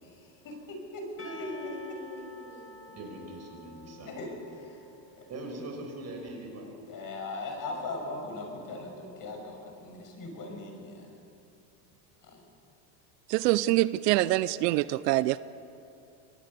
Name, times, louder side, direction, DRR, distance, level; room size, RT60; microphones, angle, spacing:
voice 1, 0.0-1.1 1.4-1.5 4.1-4.8 6.9-11.1 12.2-12.4, left 2 dB, 40° left, 3 dB, 6.2 m, -39 dB
Percussion / Church bell, 1.2-6.2, left 2 dB, 25° left, 2.3 m, -51 dB
voice 2, 1.2-4.1 5.3-6.7, right 1 dB, 30° right, 2 dB, 5.9 m, -42 dB
voice 3, 13.3-15.4, right 17 dB, 75° right, 17 dB, 0.7 m, -25 dB
24.0 x 19.0 x 6.8 m, 2.6 s
supercardioid pair, 115°, 49 cm